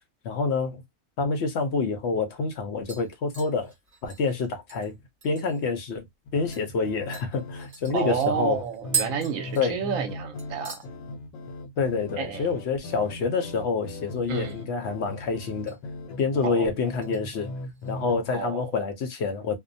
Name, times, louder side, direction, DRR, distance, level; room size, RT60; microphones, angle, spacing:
voice 1, 0.2-0.8 1.2-3.7 4.0-5.0 5.2-6.0 6.3-8.6 9.6-9.8 11.8-15.8 16.2-17.5 17.9-19.6, left 4 dB, 60° left, 0.7 m, -27 dB
sound 1, 1.8-1.9 2.3-2.6 2.9-5.7 6.1-6.2 6.5-6.7 7.1-10.1 10.4-10.9 11.2-11.6 11.9-12.0 14.1-14.7 15.0-15.8 16.2-16.5 17.0-17.9 18.3-18.4, right 5 dB, 45° right, 0.5 m, -37 dB
sound 2, 6.3-18.2, left 2 dB, 75° left, 1.1 m, -39 dB
voice 2, 7.9-10.8 12.2-12.5 14.3-14.6 16.4-16.7 18.3-18.7, right 7 dB, 65° right, 0.9 m, -30 dB
2.6 x 2.1 x 2.6 m
omnidirectional pair, 1.6 m